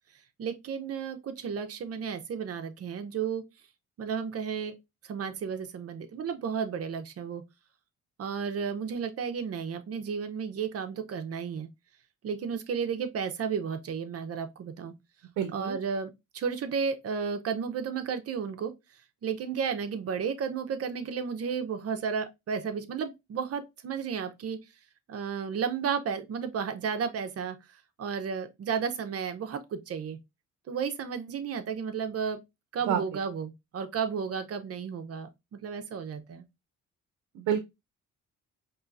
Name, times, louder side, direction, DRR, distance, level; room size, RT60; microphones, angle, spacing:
voice 1, 0.4-3.4 4.0-4.7 5.0-7.4 8.2-11.7 12.2-14.9 15.5-18.7 19.2-24.6 25.1-27.6 28.0-30.2 30.7-32.4 32.7-35.3 35.6-36.5, right 6 dB, 50° right, 0.7 m, -33 dB
voice 2, 15.4-15.7 32.9-33.0 37.3-37.6, right 9 dB, 90° right, 0.6 m, -28 dB
4.5 x 3.0 x 2.5 m
cardioid pair, 90°, 30 cm